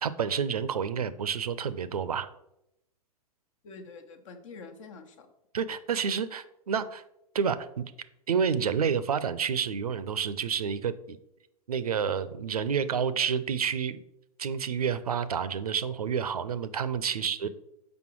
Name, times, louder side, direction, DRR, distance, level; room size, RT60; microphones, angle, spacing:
voice 1, 0.0-2.3 5.5-7.0 7.3-7.9 8.3-11.2 11.7-14.0 14.4-17.5, right 7 dB, 75° right, 15 dB, 0.6 m, -29 dB
voice 2, 3.6-5.3 17.2-17.5, left 4 dB, 55° left, 7 dB, 1.1 m, -47 dB
6.3 x 5.2 x 4.6 m, 0.84 s
figure-of-eight pair, 105°, 20 cm